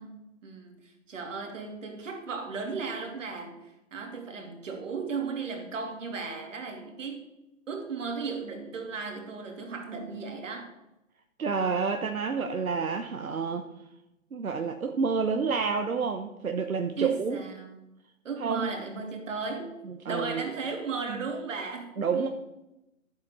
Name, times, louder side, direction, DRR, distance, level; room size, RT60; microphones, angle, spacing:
voice 1, 0.0-7.3 7.7-10.7 17.0-17.8 18.2-19.8 20.0-22.3, right 4 dB, 65° right, 3 dB, 2.9 m, -36 dB
voice 2, 11.4-13.7 14.3-17.4 18.4-18.7 19.8-20.4 21.1-21.2 22.0-22.3, right 5 dB, 90° right, 5 dB, 1.1 m, -29 dB
11.5 x 8.0 x 5.4 m, 0.92 s
hypercardioid pair, 140°, 41 cm